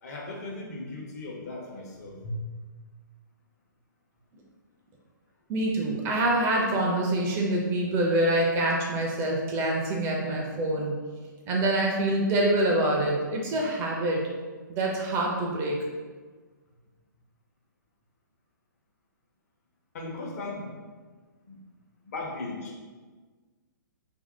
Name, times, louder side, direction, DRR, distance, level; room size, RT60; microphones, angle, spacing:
voice 1, 0.0-2.4 19.9-20.8 21.5-21.6 22.0-22.8, left 2 dB, 50° left, -2 dB, 0.9 m, -37 dB
voice 2, 5.5-11.0 11.5-14.3 14.7-15.8, right 1 dB, 25° right, -1 dB, 0.5 m, -26 dB
2.8 x 2.7 x 3.7 m, 1.4 s
figure-of-eight pair, 125°, 11 cm